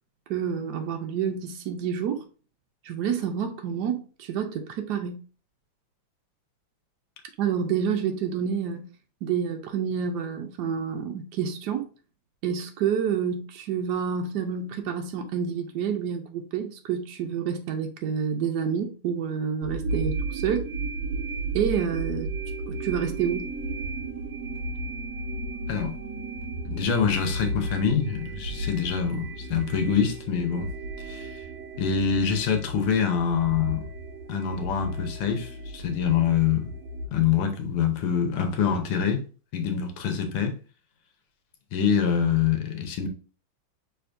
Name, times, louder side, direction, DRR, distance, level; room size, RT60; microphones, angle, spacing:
voice 1, 0.3-2.2 2.8-5.2 7.4-8.9 9.2-11.9 12.4-20.7 21.5-22.3 22.7-23.5, right 7 dB, 85° right, 0.9 m, -28 dB
sound 1, 19.6-37.1, right 2 dB, 55° right, 1.1 m, -34 dB
voice 2, 26.7-30.7 31.0-31.4 31.8-33.8 34.3-36.7 37.1-39.2 39.5-40.6 41.7-43.1, left 7 dB, 80° left, 1.8 m, -25 dB
5.9 x 3.4 x 2.5 m
omnidirectional pair, 2.4 m